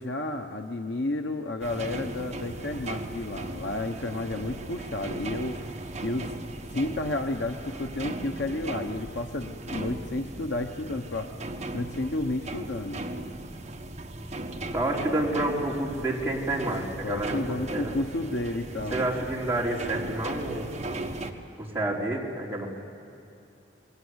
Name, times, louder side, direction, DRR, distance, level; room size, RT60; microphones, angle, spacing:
voice 1, 0.0-5.7 6.0-6.3 6.7-11.3 11.7-13.0 17.0-19.0, left 2 dB, 70° left, 4 dB, 1.1 m, -31 dB
sound 1, 1.6-21.3, right 1 dB, 40° right, 1.6 m, -37 dB
voice 2, 14.7-17.4 17.7-17.9 18.9-21.1 21.6-22.7, right 2 dB, 15° right, -4 dB, 4.0 m, -29 dB
28.0 x 21.0 x 8.1 m, 2.8 s
head